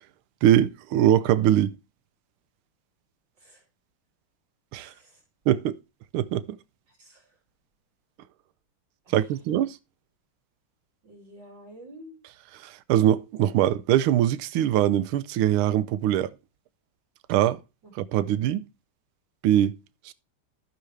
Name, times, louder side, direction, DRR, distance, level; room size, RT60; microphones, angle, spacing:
voice 1, 0.4-1.7 4.7-4.9 5.5-5.8 6.1-6.4 9.1-9.8 12.6-16.3 17.3-17.6 17.9-18.6 19.4-19.7 20.1-20.2, right 11 dB, 90° right, 1.5 m, -22 dB
voice 2, 4.8-5.2 6.9-7.3 9.0-9.2 11.0-12.2 17.8-18.2, equal, 60° right, 3.3 m, -49 dB
14.0 x 6.1 x 3.3 m
omnidirectional pair, 2.3 m